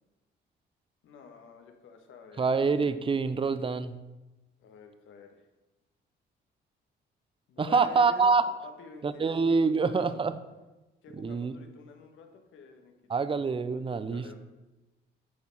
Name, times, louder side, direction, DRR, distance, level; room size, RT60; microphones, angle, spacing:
voice 1, 1.0-2.5 4.6-5.4 7.5-9.3 9.7-10.2 11.0-12.9 14.1-14.3, left 5 dB, 80° left, 5 dB, 1.5 m, -48 dB
voice 2, 2.4-3.9 7.6-8.4 9.0-10.4 11.2-11.5 13.1-14.3, right 4 dB, 25° right, 12 dB, 0.6 m, -26 dB
9.3 x 4.6 x 7.2 m, 1.0 s
cardioid pair, 90°, 20 cm